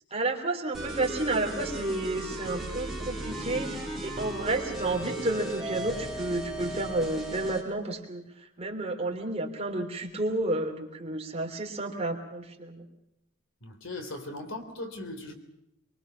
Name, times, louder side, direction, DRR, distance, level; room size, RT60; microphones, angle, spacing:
voice 1, 0.1-8.2 8.6-12.8, right 2 dB, 30° right, 2 dB, 3.4 m, -31 dB
sound 1, 0.7-7.7, right 1 dB, ahead, 4.5 m, -36 dB
voice 2, 13.6-15.3, left 2 dB, 70° left, 7 dB, 3.6 m, -38 dB
23.5 x 23.5 x 5.9 m, 0.85 s
head